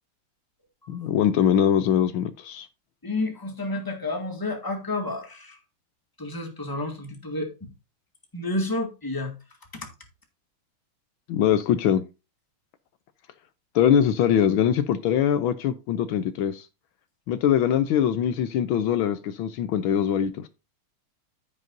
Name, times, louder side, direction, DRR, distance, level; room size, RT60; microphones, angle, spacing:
voice 1, 0.9-2.7 11.3-12.0 13.7-16.7 17.3-20.5, left 9 dB, 75° left, 1.5 m, -22 dB
voice 2, 3.0-5.6 6.2-7.7 8.3-9.3 9.7-9.9, left 2 dB, 10° left, 1.9 m, -30 dB
15.0 x 5.3 x 2.6 m
omnidirectional pair, 2.3 m